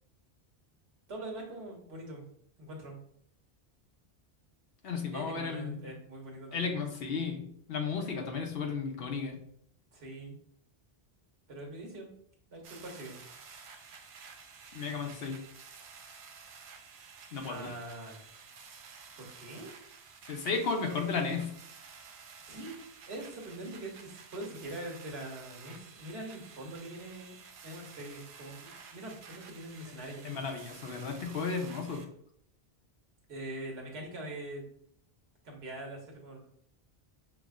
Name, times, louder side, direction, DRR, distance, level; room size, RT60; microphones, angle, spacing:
voice 1, 1.1-2.3 2.6-3.0 5.1-6.8 9.9-10.4 11.5-12.1 12.5-13.2 17.5-18.3 19.2-19.7 22.4-22.8 23.1-27.3 27.6-30.3 33.3-34.6 35.4-36.4, right 1 dB, 90° right, -1 dB, 1.3 m, -43 dB
voice 2, 4.8-5.9 6.5-9.4 14.7-15.4 17.3-17.7 20.3-21.5 30.2-32.0, left 5 dB, 70° left, 3 dB, 0.9 m, -34 dB
sound 1, 12.6-32.0, right 5 dB, 65° right, 0.7 m, -52 dB
5.8 x 2.1 x 2.4 m, 0.66 s
omnidirectional pair, 1.0 m